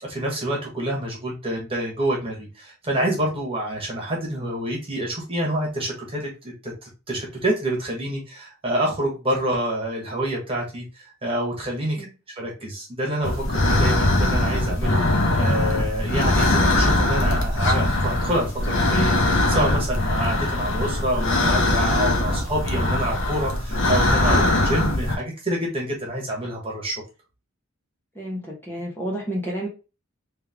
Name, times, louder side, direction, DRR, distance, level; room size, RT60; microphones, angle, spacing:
voice 1, 0.0-12.0 12.4-27.0, right 1 dB, 25° right, -1 dB, 1.5 m, -27 dB
sound 1, 13.2-25.2, left 1 dB, 60° left, 0.9 m, -21 dB
voice 2, 28.1-29.7, right 1 dB, 10° left, -3 dB, 1.0 m, -30 dB
3.4 x 3.3 x 3.5 m, 0.31 s
head